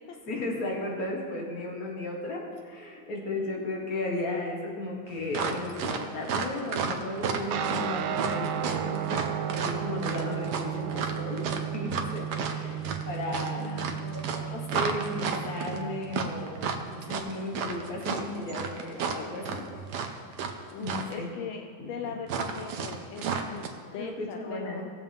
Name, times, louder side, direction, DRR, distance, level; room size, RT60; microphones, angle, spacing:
voice 1, 0.3-11.5 11.7-13.8 14.1-19.7 20.8-21.3 21.8-22.1 24.0-24.9, left 2 dB, 50° left, -1 dB, 2.1 m, -35 dB
voice 2, 3.2-3.7 13.5-14.3 20.7-24.9, left 6 dB, 80° left, 4 dB, 1.4 m, -40 dB
sound 1, 5.3-20.6 20.8-21.2 22.3-23.7, right 6 dB, 65° right, 1.3 m, -32 dB
Guitar, 7.5-17.2, right 10 dB, 85° right, 1.4 m, -34 dB
18.5 x 7.3 x 3.6 m, 2.3 s
omnidirectional pair, 2.1 m